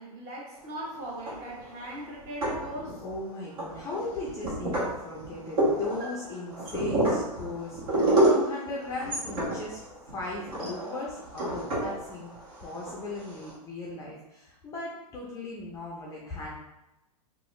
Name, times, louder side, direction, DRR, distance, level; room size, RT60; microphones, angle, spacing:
voice 1, 0.0-3.0, right 1 dB, 35° right, -3 dB, 1.0 m, -39 dB
sound 1, 1.1-1.7 2.2-3.1 3.6-13.5, right 1 dB, 65° right, 1.3 m, -29 dB
voice 2, 3.0-12.3 12.6-16.6, left 2 dB, 15° left, -4 dB, 0.4 m, -37 dB
2.7 x 2.4 x 3.1 m, 0.96 s
hypercardioid pair, 135°, 21 cm